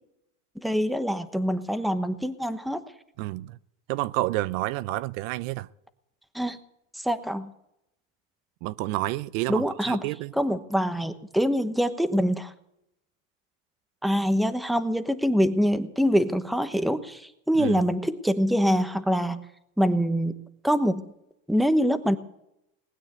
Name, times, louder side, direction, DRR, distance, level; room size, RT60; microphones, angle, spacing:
voice 1, 0.6-2.8 6.3-6.6 6.9-7.5 9.5-10.0 10.4-12.5 14.0-19.5 19.8-20.3 20.6-21.0 21.5-22.2, equal, ahead, 1.0 m, -24 dB
voice 2, 3.2-3.6 3.9-5.7 8.6-10.3 17.6-17.7, right 18 dB, 70° right, 0.6 m, -29 dB
19.5 x 9.2 x 8.0 m
supercardioid pair, 115°, 41 cm